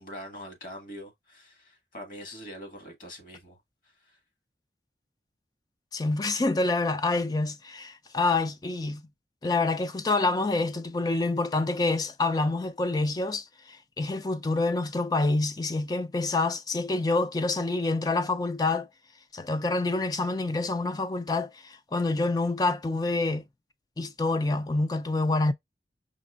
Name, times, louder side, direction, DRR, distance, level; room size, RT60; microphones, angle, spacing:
voice 1, 0.0-3.6 4.0-4.2, equal, 50° left, 1.6 m, -43 dB
voice 2, 5.9-9.1 9.4-18.9 19.3-23.4 24.0-25.5, left 3 dB, 20° left, 0.3 m, -27 dB
5.1 x 3.0 x 2.4 m
head